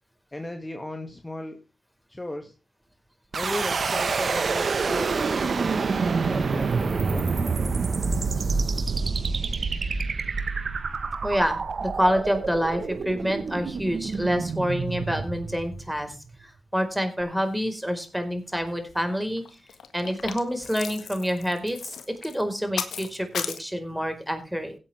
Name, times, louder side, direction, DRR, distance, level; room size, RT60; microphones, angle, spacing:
voice 1, 0.3-1.6 2.1-2.5 3.3-7.4, left 1 dB, 20° left, 4 dB, 2.2 m, -36 dB
sound 1, 3.3-16.3, right 4 dB, 65° right, 1.4 m, -27 dB
voice 2, 11.2-19.4 19.9-24.8, equal, 5° right, 7 dB, 4.7 m, -27 dB
sound 2, 18.4-18.5 18.7-19.0 19.3-23.6, left 7 dB, 90° left, 1.6 m, -36 dB
17.0 x 8.7 x 3.5 m, 0.31 s
cardioid pair, 45°, 0 cm